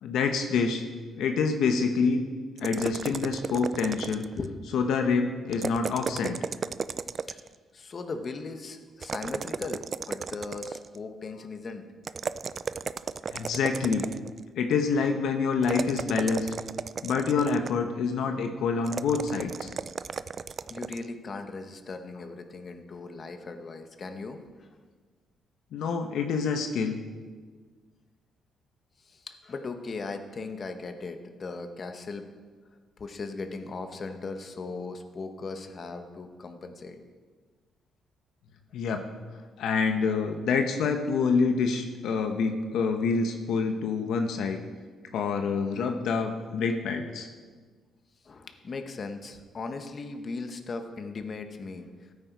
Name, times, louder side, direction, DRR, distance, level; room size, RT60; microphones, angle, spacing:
voice 1, 0.0-0.8 1.2-2.2 2.6-4.3 4.6-6.4 13.3-14.0 14.6-16.5 17.0-19.7 25.7-27.0 38.7-39.0 39.6-44.6 45.1-47.3, left 5 dB, 80° left, 5 dB, 1.0 m, -27 dB
sound 1, 2.6-4.5 5.5-7.6 9.0-11.0 12.0-14.4 15.6-17.9 18.9-21.1, right 5 dB, 45° right, 0.3 m, -34 dB
voice 2, 7.7-11.8 20.7-24.7 29.0-32.3 33.0-37.0 48.2-51.9, left 3 dB, 40° left, 6 dB, 1.1 m, -38 dB
14.5 x 8.7 x 4.7 m, 1.5 s
cardioid pair, 90°, 0 cm